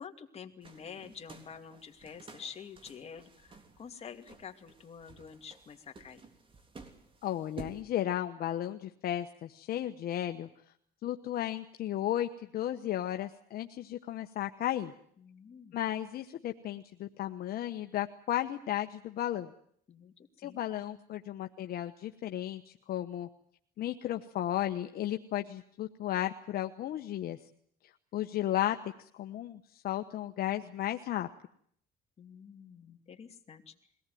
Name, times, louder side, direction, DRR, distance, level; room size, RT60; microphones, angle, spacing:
voice 1, 0.0-6.2 15.2-15.8 19.9-21.0 32.2-33.7, left 7 dB, 40° left, 5 dB, 2.6 m, -48 dB
sound 1, 0.6-7.8, right 4 dB, 30° right, 3.6 m, -52 dB
voice 2, 7.2-10.5 11.0-14.9 15.7-19.5 20.4-23.3 23.8-27.4 28.1-31.3, left 12 dB, 65° left, 6 dB, 1.2 m, -34 dB
22.5 x 18.0 x 9.4 m, 0.64 s
cardioid pair, 110°, 17 cm